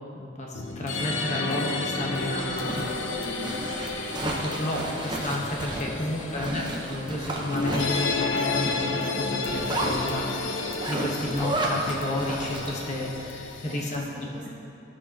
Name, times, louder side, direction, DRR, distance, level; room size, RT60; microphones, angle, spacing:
voice 1, 0.2-3.1 4.2-14.0, left 1 dB, 35° left, -2 dB, 1.0 m, -32 dB
sound 1, 0.5-14.0, left 3 dB, 70° left, 0.7 m, -32 dB
Zipper (clothing), 1.8-13.0, right 1 dB, 20° right, 0.9 m, -33 dB
voice 2, 3.2-3.6 5.9-6.6 13.5-14.5, equal, 40° right, -6 dB, 2.0 m, -42 dB
sound 2, 10.8-13.5, right 1 dB, 75° right, 0.9 m, -52 dB
17.0 x 6.2 x 2.8 m, 2.6 s
head